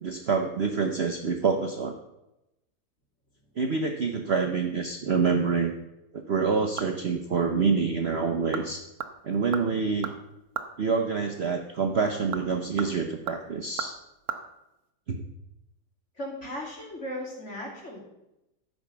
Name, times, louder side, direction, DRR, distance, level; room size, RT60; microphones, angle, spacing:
voice 1, 0.0-1.9 3.6-5.8 6.1-8.8 9.2-10.1 10.8-14.0 15.1-15.2, right 5 dB, 50° right, 3 dB, 0.9 m, -27 dB
sound 1, 6.3-7.2 7.5-7.6 8.3-8.7 9.0-10.8 12.1-14.4 14.7-14.8, right 8 dB, 65° right, 1.4 m, -37 dB
voice 2, 16.2-18.0, equal, 40° left, -2 dB, 3.3 m, -36 dB
13.5 x 5.4 x 6.9 m, 0.91 s
omnidirectional pair, 1.8 m